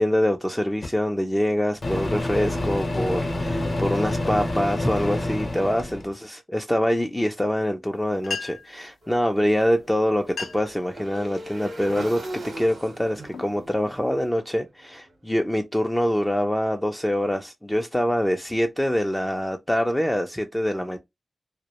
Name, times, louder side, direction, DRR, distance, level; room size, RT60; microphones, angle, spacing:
voice 1, 0.0-12.2 12.6-21.0, equal, 5° left, 0.3 m, -25 dB
Microwave oven, 0.8-0.9 1.8-6.1, left 1 dB, 45° left, 0.6 m, -27 dB
sound 1, 7.9-8.0 8.2-8.8 9.7-9.8 10.2-10.8 11.3-11.6 12.2-12.5 13.0-14.3, left 5 dB, 85° left, 0.4 m, -36 dB
Motorcycle / Engine, 9.0-15.1, right 1 dB, 85° right, 0.8 m, -40 dB
2.2 x 2.0 x 2.8 m
wide cardioid pair, 125°, 0 cm